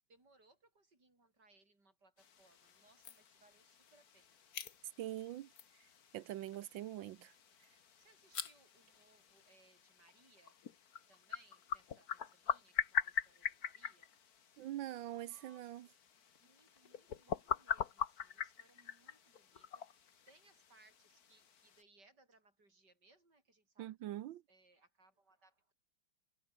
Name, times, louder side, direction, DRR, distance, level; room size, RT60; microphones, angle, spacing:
voice 1, 0.1-4.4 8.0-10.6 11.1-14.1 15.1-15.9 16.4-24.2 24.5-25.7, right 2 dB, 60° right, 8.3 m, -69 dB
sound 1, 2.2-21.8, left 7 dB, 50° left, 1.8 m, -44 dB
voice 2, 5.0-5.5 6.1-7.3 14.6-15.9 23.8-24.4, right 13 dB, 80° right, 1.5 m, -43 dB
omnidirectional pair, 2.1 m